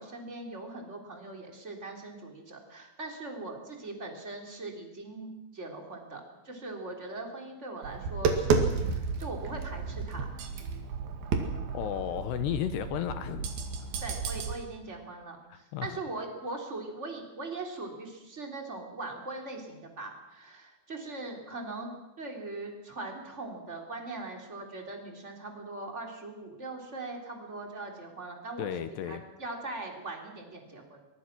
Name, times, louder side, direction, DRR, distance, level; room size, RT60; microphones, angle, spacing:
voice 1, 0.0-10.3 14.0-21.9 22.2-28.7 29.0-31.0, right 2 dB, 15° right, 2 dB, 3.1 m, -40 dB
Tap, 7.8-14.5, right 5 dB, 55° right, 3.5 m, -31 dB
voice 2, 11.7-13.5 15.5-15.9 28.6-29.2, left 10 dB, 75° left, 10 dB, 2.7 m, -33 dB
24.0 x 23.0 x 6.1 m, 1.0 s
omnidirectional pair, 5.6 m